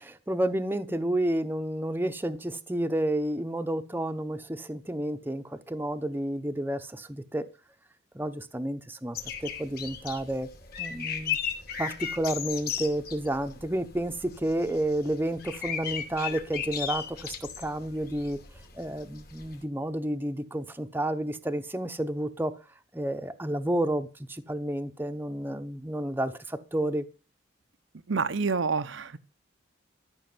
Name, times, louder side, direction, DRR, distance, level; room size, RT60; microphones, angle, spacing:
voice 1, 0.0-7.4 8.1-10.5 10.8-11.4 11.8-18.4 18.7-22.5 22.9-27.0, right 1 dB, 10° right, 0.8 m, -30 dB
sound 1, 9.2-19.6, left 8 dB, 50° left, 2.6 m, -36 dB
voice 2, 28.1-29.2, right 4 dB, 75° right, 0.8 m, -28 dB
13.5 x 6.3 x 7.8 m
head